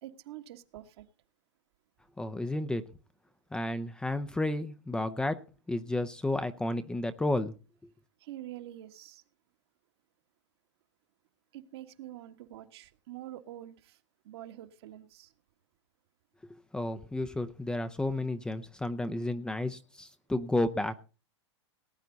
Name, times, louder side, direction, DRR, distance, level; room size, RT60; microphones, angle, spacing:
voice 1, 0.0-1.0 8.2-9.2 11.5-15.3, right 13 dB, 60° right, 7 dB, 1.7 m, -46 dB
voice 2, 2.2-2.8 3.5-5.4 5.7-7.5 16.7-21.0, left 2 dB, 5° left, 10 dB, 0.7 m, -32 dB
19.0 x 9.3 x 4.0 m, 0.34 s
hypercardioid pair, 135°, 15 cm